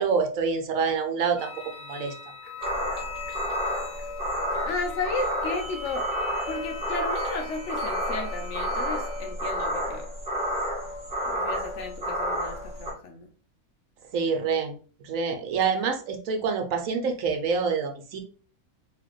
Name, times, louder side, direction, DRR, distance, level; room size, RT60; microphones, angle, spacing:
voice 1, 0.0-1.5 1.9-2.1 14.1-14.7 15.0-18.2, right 5 dB, 65° right, 5 dB, 1.0 m, -26 dB
sound 1, 1.4-9.3, left 4 dB, 30° left, 1.7 m, -41 dB
sound 2, 2.6-12.9, equal, 30° right, 1.2 m, -30 dB
voice 2, 4.6-6.1 6.5-10.1 11.3-13.3, left 3 dB, 65° left, 5 dB, 0.8 m, -33 dB
4.0 x 2.9 x 3.1 m, 0.41 s
omnidirectional pair, 1.6 m